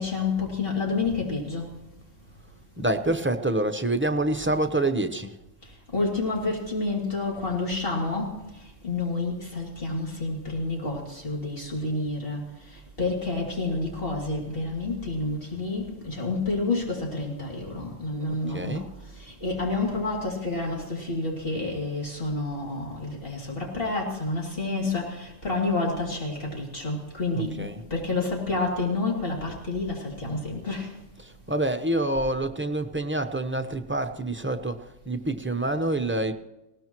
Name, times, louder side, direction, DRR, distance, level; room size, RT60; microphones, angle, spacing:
voice 1, 0.0-1.7 5.9-8.4 8.8-12.4 13.0-18.9 19.4-30.9, left 3 dB, 50° left, -2 dB, 3.1 m, -29 dB
voice 2, 2.8-5.4 18.2-18.9 27.3-27.8 31.2-36.3, right 1 dB, 10° right, 7 dB, 0.7 m, -27 dB
20.0 x 18.0 x 3.1 m, 0.96 s
omnidirectional pair, 1.3 m